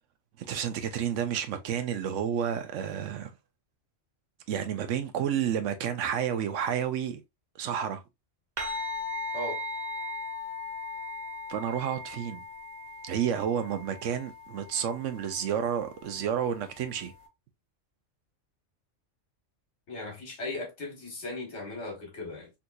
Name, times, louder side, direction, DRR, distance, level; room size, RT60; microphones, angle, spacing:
voice 1, 0.4-3.3 4.5-7.2 7.6-8.0 11.5-12.4 13.0-17.1, right 8 dB, 80° right, 1.0 m, -30 dB
sound 1, 8.6-17.3, left 2 dB, 55° right, 0.9 m, -39 dB
voice 2, 19.9-22.5, left 2 dB, 65° left, 1.7 m, -37 dB
3.5 x 2.9 x 2.3 m
omnidirectional pair, 1.3 m